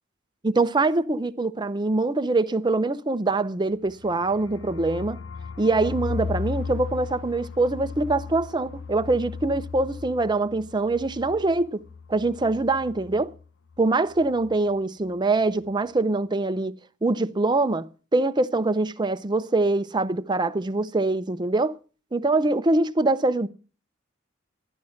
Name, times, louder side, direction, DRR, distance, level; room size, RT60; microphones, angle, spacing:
voice 1, 0.4-5.2 5.6-11.8 12.1-13.3 13.8-16.7 17.0-17.9 18.1-21.7 22.1-23.5, right 2 dB, 25° right, 0.6 m, -24 dB
sound 1, 3.7-13.4 13.7-13.8 14.1-14.6, left 5 dB, 85° left, 0.8 m, -36 dB
13.0 x 11.0 x 6.4 m
head